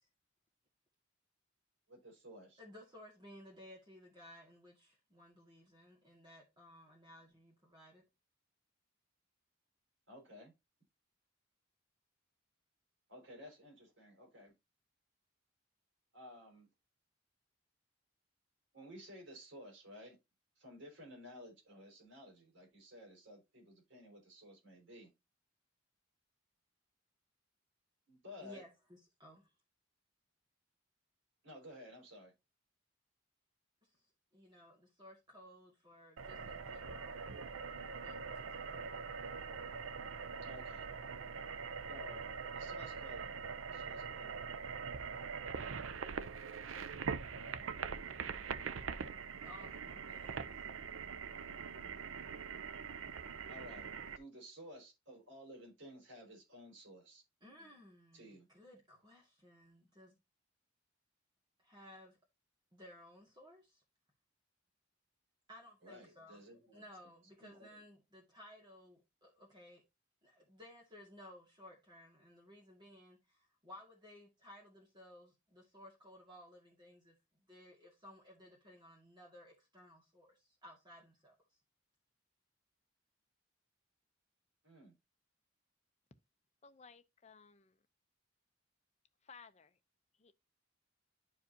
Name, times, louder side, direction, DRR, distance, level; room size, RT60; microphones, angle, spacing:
voice 1, 1.9-2.6 10.1-10.5 13.1-14.5 16.1-16.7 18.7-20.2 20.6-25.1 28.1-28.6 31.4-32.3 40.4-40.9 41.9-42.3 42.5-43.3 43.7-44.4 53.5-57.2 58.1-58.5 65.8-66.8 67.4-67.7 84.6-84.9, equal, 70° right, 4.7 m, -54 dB
voice 2, 2.6-8.0 28.4-29.5 33.8-34.0 34.3-37.2 38.0-38.9 49.4-50.6 57.4-60.2 61.6-62.2 62.7-63.8 65.5-66.4 66.7-69.8 70.2-77.2 77.5-81.3, left 1 dB, 20° right, 2.1 m, -58 dB
sound 1, 36.2-54.2, right 6 dB, 90° right, 0.6 m, -43 dB
voice 3, 86.6-87.8 89.2-89.8 90.2-90.3, left 5 dB, 35° left, 0.6 m, -58 dB
11.0 x 4.8 x 2.8 m
head